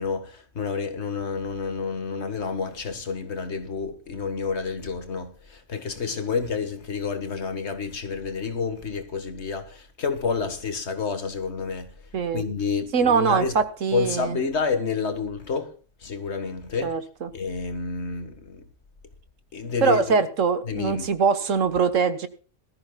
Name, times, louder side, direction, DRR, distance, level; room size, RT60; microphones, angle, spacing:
voice 1, 0.0-11.9 12.3-13.6 13.9-15.8 16.0-17.0 17.3-18.7 19.5-20.2 20.6-21.1, left 5 dB, 60° left, 1.8 m, -29 dB
voice 2, 12.1-12.4 12.9-14.4 16.8-17.3 19.8-22.3, right 5 dB, 85° right, 1.7 m, -22 dB
21.0 x 13.5 x 2.3 m
omnidirectional pair, 1.3 m